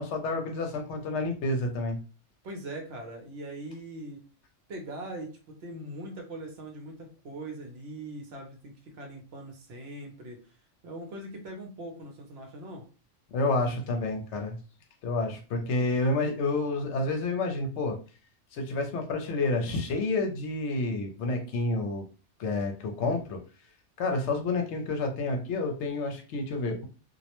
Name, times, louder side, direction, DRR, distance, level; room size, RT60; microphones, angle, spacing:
voice 1, 0.0-2.0 13.3-14.6 15.0-18.0 18.5-22.1 22.4-23.4 24.0-26.9, left 2 dB, 70° left, 4 dB, 0.8 m, -29 dB
voice 2, 2.4-4.2 4.7-10.6 10.8-12.9, right 1 dB, 65° right, 2 dB, 0.8 m, -41 dB
2.3 x 2.1 x 2.9 m, 0.35 s
omnidirectional pair, 1.2 m